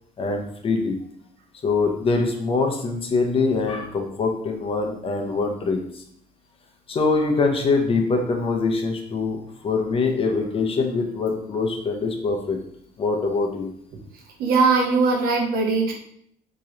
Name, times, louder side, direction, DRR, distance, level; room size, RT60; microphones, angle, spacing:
voice 1, 0.2-1.0 1.6-6.0 6.9-9.4 9.6-12.6 13.0-13.7, left 4 dB, 35° left, 2 dB, 0.7 m, -23 dB
voice 2, 14.4-15.9, right 4 dB, 70° right, 0 dB, 0.9 m, -20 dB
3.0 x 2.9 x 3.8 m, 0.69 s
cardioid pair, 115°, 16 cm